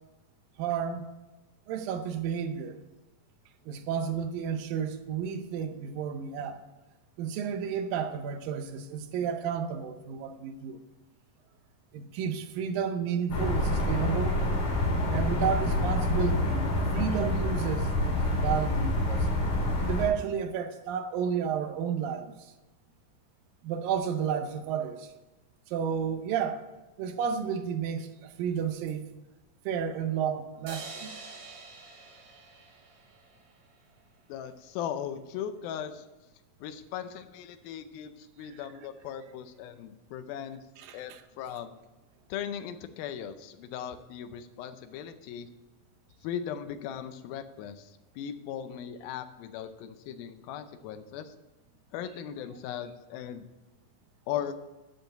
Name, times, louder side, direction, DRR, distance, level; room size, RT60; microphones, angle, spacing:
voice 1, 0.6-1.1 1.7-2.8 3.7-6.6 7.2-10.8 11.9-14.4 15.1-16.7 16.9-19.3 19.8-22.3 23.6-25.1 25.7-26.7 27.0-29.0 29.7-31.2 38.5-38.6 40.8-41.2, right 7 dB, 80° right, 2.4 m, -31 dB
sound 1, 13.3-20.1, left 1 dB, 60° left, 3.8 m, -27 dB
sound 2, 30.7-34.0, right 3 dB, 55° right, 3.2 m, -46 dB
voice 2, 34.3-36.1 36.6-40.6 40.9-41.8 42.3-45.5 46.2-51.3 51.9-53.5 54.3-54.5, left 9 dB, 85° left, 2.5 m, -38 dB
11.0 x 4.5 x 7.8 m
omnidirectional pair, 4.1 m